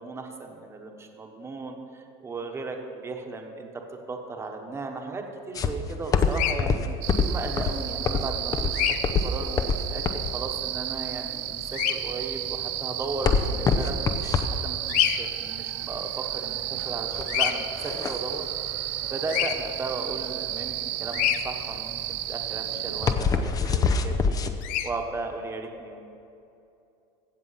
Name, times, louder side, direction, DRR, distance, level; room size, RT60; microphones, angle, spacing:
voice 1, 0.0-6.8 7.2-8.9 9.2-16.1 16.3-18.8 19.1-24.4 24.8-26.1, right 3 dB, 15° right, 3 dB, 1.3 m, -36 dB
sound 1, 5.5-24.5, left 5 dB, 25° left, 0.7 m, -27 dB
Bird vocalization bird call bird song, 6.3-6.6 8.7-9.0 11.7-11.9 14.9-15.2 17.3-17.5 19.3-19.5 21.1-21.4 24.6-24.9, left 12 dB, 60° left, 0.8 m, -25 dB
sound 2, 7.0-23.1, right 15 dB, 75° right, 0.6 m, -33 dB
16.0 x 7.3 x 5.7 m, 2.7 s
cardioid pair, 140°, 15 cm